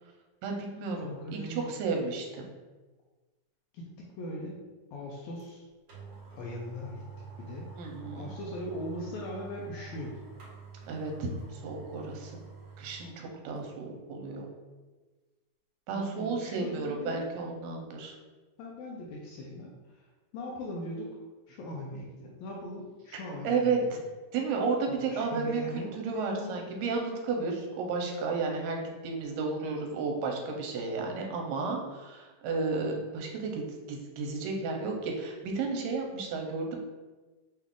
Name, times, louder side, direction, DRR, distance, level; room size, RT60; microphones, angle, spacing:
voice 1, 0.4-2.5 7.8-8.3 10.8-12.4 12.8-14.5 15.9-18.2 23.1-24.0 24.3-33.6 33.9-36.8, right 4 dB, 80° right, 2 dB, 2.3 m, -33 dB
voice 2, 1.0-1.7 3.7-4.6 4.9-5.7 6.3-7.0 7.4-7.7 8.1-10.2 15.9-17.3 18.6-20.1 20.3-21.1 21.5-23.9 25.0-26.6, left 1 dB, 85° left, -3 dB, 1.6 m, -40 dB
sound 1, 5.4-5.5 5.9-13.2 13.6-13.7, right 5 dB, 55° right, 1.2 m, -47 dB
5.9 x 2.4 x 3.6 m, 1.2 s
omnidirectional pair, 4.0 m